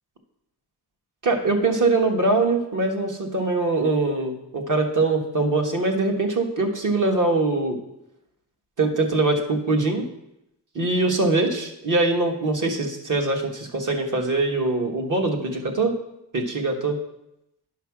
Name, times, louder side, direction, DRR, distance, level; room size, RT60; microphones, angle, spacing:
voice 1, 1.2-7.8 8.8-10.1 10.7-16.0 16.3-17.0, right 2 dB, 50° right, 3 dB, 1.6 m, -23 dB
10.5 x 5.7 x 6.0 m, 0.84 s
wide cardioid pair, 150°, 40 cm